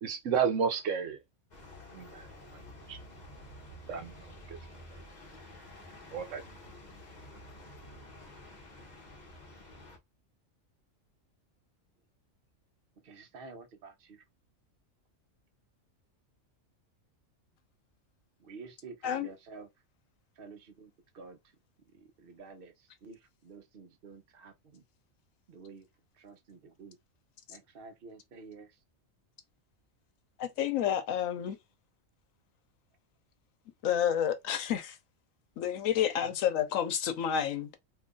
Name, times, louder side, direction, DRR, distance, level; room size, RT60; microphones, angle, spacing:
voice 1, 0.0-1.2 1.9-2.3 2.9-3.0 3.9-4.6 6.1-6.4, right 7 dB, 70° right, 1.0 m, -32 dB
sound 1, 1.5-10.0, left 1 dB, 35° left, 1.0 m, -50 dB
voice 2, 5.9-6.3 13.0-14.2 18.4-19.7 20.4-21.4 21.9-24.8 25.5-25.9 26.1-27.0 27.5-28.8 36.2-36.3, right 4 dB, 50° right, 0.9 m, -50 dB
voice 3, 30.4-31.6 33.8-35.0 35.6-37.7, left 9 dB, 85° left, 1.1 m, -30 dB
2.8 x 2.5 x 3.7 m
omnidirectional pair, 1.4 m